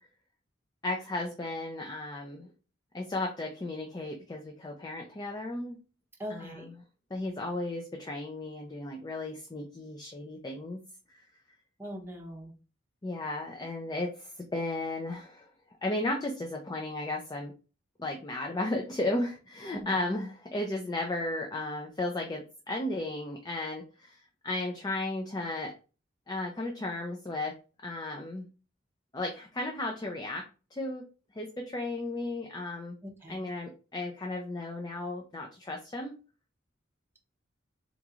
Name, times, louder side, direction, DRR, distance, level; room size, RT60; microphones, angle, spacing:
voice 1, 0.8-2.5 2.9-5.8 6.3-6.8 7.1-10.8 13.0-15.5 15.8-17.5 18.0-25.7 26.3-27.5 27.8-28.5 29.1-30.4 30.7-31.1 31.3-33.0 33.3-36.2, left 2 dB, 20° left, 2 dB, 0.4 m, -34 dB
voice 2, 6.2-6.7 11.8-12.5 19.7-20.1 33.2-33.4, equal, 10° right, 0 dB, 0.7 m, -41 dB
3.7 x 3.0 x 2.4 m, 0.34 s
head